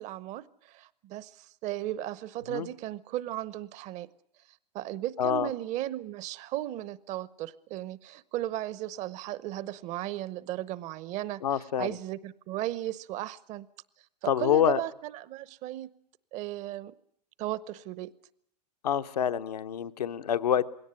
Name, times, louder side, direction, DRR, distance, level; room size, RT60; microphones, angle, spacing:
voice 1, 0.0-4.1 4.7-11.4 11.8-13.7 14.2-15.9 16.3-16.9 17.4-18.1, right 14 dB, 35° right, 0.8 m, -35 dB
voice 2, 5.2-5.5 11.4-12.0 14.3-14.8 18.8-20.7, left 9 dB, 70° left, 1.0 m, -26 dB
21.0 x 17.5 x 9.9 m
figure-of-eight pair, 100°, 21 cm